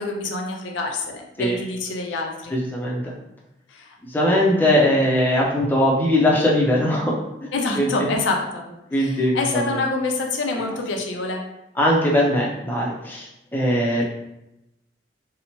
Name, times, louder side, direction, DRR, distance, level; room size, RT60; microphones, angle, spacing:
voice 1, 0.0-2.5 3.7-4.0 7.5-8.6 8.9-11.4, left 3 dB, 90° left, 2 dB, 0.4 m, -26 dB
voice 2, 2.5-3.1 4.1-7.1 7.4-7.5 7.8-8.1 8.9-9.6 11.8-14.0, left 1 dB, 10° left, -4 dB, 0.4 m, -20 dB
2.8 x 2.0 x 2.9 m, 0.89 s
head